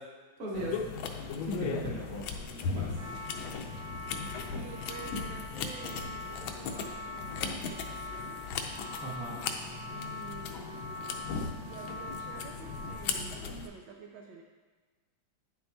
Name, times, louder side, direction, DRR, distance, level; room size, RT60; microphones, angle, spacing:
voice 1, 0.4-0.8 1.4-2.2 2.7-3.2 9.0-9.4, right 2 dB, 35° right, -4 dB, 1.3 m, -38 dB
sound 1, 0.5-13.7, left 5 dB, 75° left, 1.3 m, -37 dB
sound 2, 3.0-12.9, left 2 dB, 50° right, 2.9 m, -44 dB
voice 2, 4.3-8.4 9.9-11.1 11.7-14.4, right 4 dB, 70° right, 1 dB, 1.1 m, -49 dB
9.1 x 6.8 x 2.7 m, 1.4 s
omnidirectional pair, 2.4 m